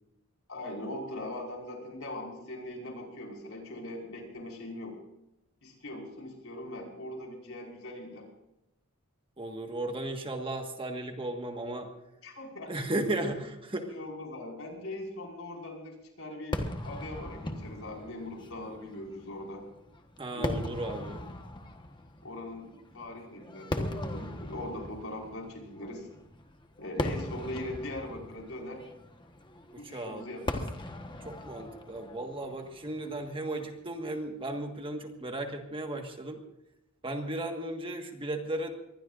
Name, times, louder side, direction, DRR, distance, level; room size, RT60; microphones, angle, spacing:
voice 1, 0.5-5.0 5.6-8.3 12.2-12.7 13.9-19.6 20.3-20.6 22.2-26.1 26.8-28.8 29.8-30.7, left 1 dB, 65° left, 0 dB, 5.4 m, -41 dB
voice 2, 9.4-11.9 12.7-13.9 20.2-21.3 29.7-30.5 31.2-36.4 37.0-38.7, right 1 dB, 25° right, 4 dB, 1.6 m, -35 dB
Fireworks, 16.5-33.9, left 1 dB, 20° left, 1.3 m, -39 dB
24.0 x 20.0 x 2.6 m, 0.92 s
head